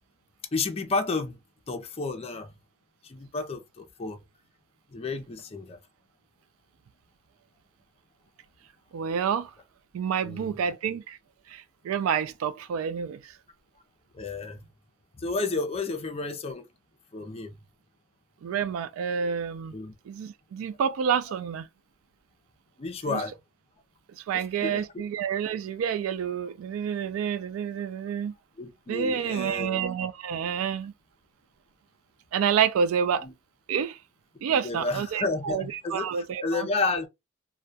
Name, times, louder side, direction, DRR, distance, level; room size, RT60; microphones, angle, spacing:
voice 1, 0.5-1.4 1.7-2.5 3.0-4.2 4.9-5.8 10.2-10.5 14.1-14.6 15.2-16.7 17.1-17.6 19.7-19.9 22.8-23.3 24.3-24.8 28.6-29.9 33.2-33.3 34.5-37.1, left 3 dB, 30° left, 0.4 m, -31 dB
voice 2, 8.9-9.5 9.9-11.2 11.5-13.4 18.4-19.7 20.1-21.7 23.1-23.2 24.2-28.3 28.9-30.9 32.3-33.3 33.7-34.0 34.4-36.7, right 7 dB, 80° right, 0.3 m, -28 dB
2.2 x 2.1 x 2.6 m
head